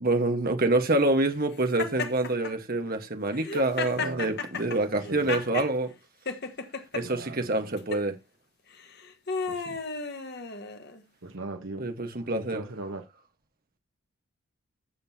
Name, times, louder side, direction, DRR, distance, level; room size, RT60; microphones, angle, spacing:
voice 1, 0.0-5.9 6.9-8.2 11.8-12.6, right 2 dB, 40° right, 1.3 m, -26 dB
Laughter, 1.8-2.5 3.3-5.7 6.3-7.0 7.8-8.1 8.8-11.0, left 4 dB, 50° left, 1.4 m, -34 dB
voice 2, 4.0-4.4 4.8-5.6 7.0-7.7 9.5-9.8 11.2-11.9 12.2-13.0, right 2 dB, 60° right, 1.1 m, -40 dB
14.5 x 7.8 x 2.8 m
head